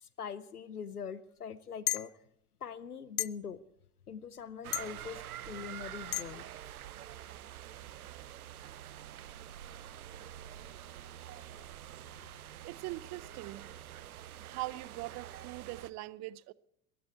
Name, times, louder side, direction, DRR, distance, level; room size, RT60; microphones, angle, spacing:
voice 1, 0.0-2.1 2.6-3.6 4.1-6.5, left 6 dB, 85° left, 0.9 m, -43 dB
sound 1, 1.9-2.1 3.2-3.3 4.7-4.9 6.1-6.2, left 15 dB, 70° left, 0.6 m, -31 dB
sound 2, 4.6-15.9, right 11 dB, 75° right, 0.8 m, -47 dB
voice 2, 12.6-13.7 14.4-16.5, right 19 dB, 40° right, 0.7 m, -41 dB
21.5 x 14.0 x 4.6 m
figure-of-eight pair, 80°, 44 cm